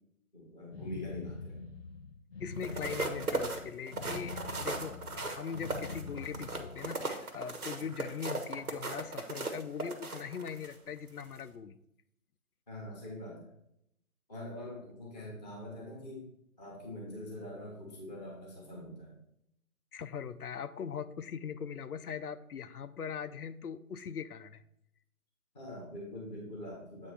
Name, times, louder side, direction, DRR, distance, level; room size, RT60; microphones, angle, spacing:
voice 1, 0.3-1.6 7.8-8.0 12.7-13.5 14.3-16.3 16.6-19.2 25.5-27.1, left 1 dB, ahead, -20 dB, 0.6 m, -44 dB
sound 1, 0.7-7.0, left 4 dB, 45° left, 0.5 m, -44 dB
voice 2, 2.4-11.8 19.9-24.6, left 7 dB, 90° left, 12 dB, 0.6 m, -41 dB
sound 2, 2.6-10.7 11.2-11.4, right 3 dB, 85° right, 1.4 m, -37 dB
8.3 x 3.0 x 5.6 m, 0.76 s
figure-of-eight pair, 150°, 44 cm